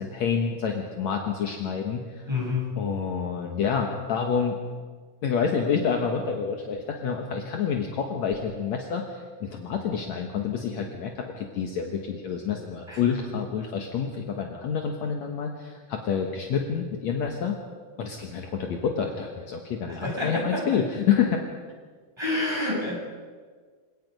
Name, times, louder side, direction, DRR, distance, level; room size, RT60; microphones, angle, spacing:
voice 1, 0.0-2.0 2.8-4.6 5.2-17.6 18.0-21.4, left 6 dB, 65° left, 2 dB, 2.4 m, -28 dB
voice 2, 2.3-2.7 12.9-13.0 19.9-20.6 22.2-23.0, left 2 dB, 5° right, -4 dB, 7.6 m, -28 dB
27.0 x 18.5 x 5.3 m, 1.6 s
omnidirectional pair, 3.8 m